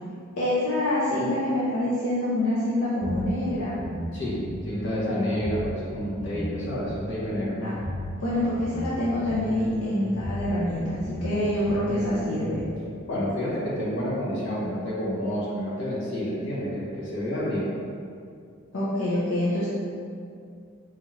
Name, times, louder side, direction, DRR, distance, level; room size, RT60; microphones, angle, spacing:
voice 1, 0.4-3.8 7.6-7.7 8.2-12.6 18.7-19.7, left 1 dB, 75° left, -9 dB, 0.6 m, -26 dB
sound 1, 3.0-12.6, equal, 30° right, 0.6 m, -34 dB
voice 2, 4.6-7.6 13.1-17.7, equal, 60° left, -7 dB, 1.0 m, -29 dB
4.2 x 2.4 x 3.2 m, 2.4 s
head